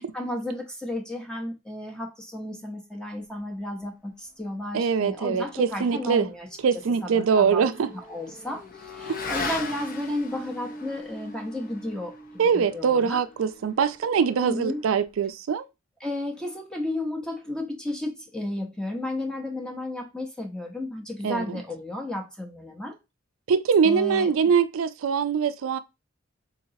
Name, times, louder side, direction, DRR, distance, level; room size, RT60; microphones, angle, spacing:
voice 1, 0.0-6.5 7.0-7.7 7.9-12.2 12.5-13.2 14.4-14.8 16.0-23.0 23.8-24.5, left 1 dB, 5° left, 0.6 m, -33 dB
voice 2, 4.7-6.3 6.6-7.9 9.1-9.2 12.4-15.6 21.2-21.6 23.5-25.8, right 6 dB, 75° right, 0.4 m, -23 dB
Motorcycle / Accelerating revving vroom, 6.3-15.1, left 3 dB, 45° left, 0.6 m, -39 dB
3.8 x 2.9 x 2.7 m
head